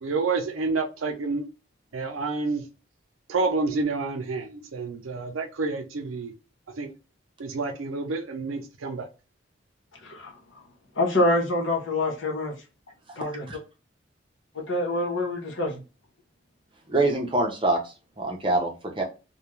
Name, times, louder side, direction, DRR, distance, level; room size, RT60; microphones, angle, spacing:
voice 1, 0.0-1.4 1.9-2.6 3.3-6.3 6.7-6.9 7.4-9.1, right 3 dB, 90° right, 0.5 m, -29 dB
voice 2, 11.0-12.5 13.2-13.4 14.5-15.8, left 1 dB, 75° left, 0.9 m, -26 dB
voice 3, 16.9-19.0, right 2 dB, 25° right, 0.6 m, -25 dB
2.4 x 2.2 x 3.0 m
head